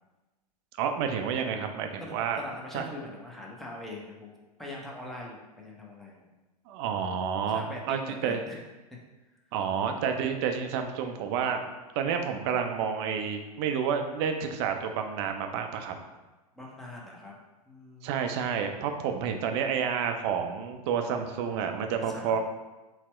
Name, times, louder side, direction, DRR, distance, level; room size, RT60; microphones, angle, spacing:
voice 1, 0.8-2.4 2.7-2.9 6.7-8.5 9.5-15.9 18.0-22.4, right 7 dB, 40° right, 5 dB, 0.5 m, -30 dB
voice 2, 2.0-4.3 4.6-6.2 7.5-8.6 16.5-17.3 17.7-18.2 22.1-22.4, left 1 dB, ahead, -3 dB, 0.6 m, -42 dB
4.1 x 2.1 x 4.3 m, 1.1 s
figure-of-eight pair, 95°, 20 cm